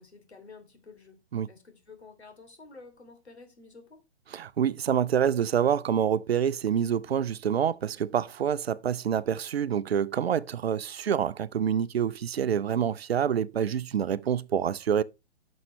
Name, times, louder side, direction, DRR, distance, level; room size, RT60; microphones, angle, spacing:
voice 1, 0.0-1.2 1.5-4.0, left 4 dB, 75° left, 2.9 m, -50 dB
voice 2, 4.3-15.0, right 8 dB, 65° right, 0.6 m, -27 dB
11.0 x 6.4 x 3.1 m
figure-of-eight pair, 120°, 33 cm